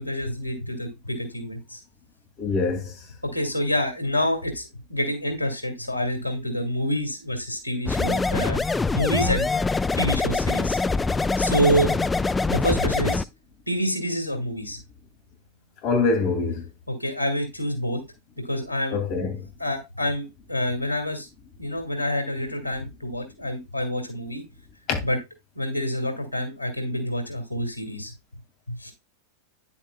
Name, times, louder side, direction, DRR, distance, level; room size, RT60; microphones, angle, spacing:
voice 1, 0.0-1.8 3.2-4.6 4.9-8.6 8.9-9.5 10.0-10.8 11.4-11.9 12.5-13.2 13.7-14.8 16.9-18.0 18.4-19.0 19.6-21.3 21.6-24.4 25.0-25.2 25.5-28.1 28.7-28.9, equal, 90° right, 2.3 m, -27 dB
voice 2, 2.4-2.9 11.8-11.9 15.8-16.7 18.9-19.5 24.9-25.0, left 4 dB, 40° left, 2.5 m, -24 dB
sound 1, 7.9-13.2, left 3 dB, 10° left, 0.3 m, -24 dB
9.9 x 7.1 x 2.3 m
figure-of-eight pair, 90°, 0 cm